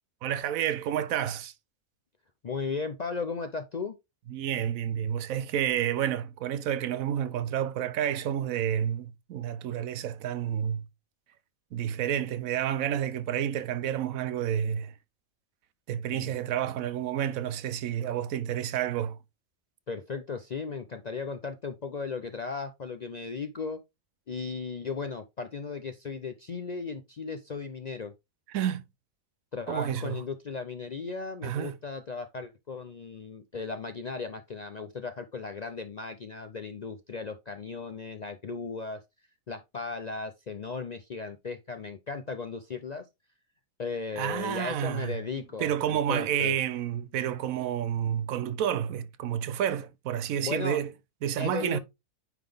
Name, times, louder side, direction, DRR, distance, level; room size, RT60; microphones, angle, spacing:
voice 1, 0.2-1.5 4.3-10.8 11.7-14.9 15.9-19.2 28.5-28.8 29.7-30.2 31.4-31.8 44.2-45.2 45.6-50.9 51.2-51.8, right 10 dB, 90° right, 1.0 m, -30 dB
voice 2, 2.4-4.0 16.1-16.3 19.9-23.8 24.3-28.1 29.5-39.0 39.5-43.0 43.8-46.5 50.4-50.8 51.4-51.8, left 4 dB, 55° left, 0.4 m, -36 dB
9.2 x 3.9 x 3.4 m
omnidirectional pair, 1.4 m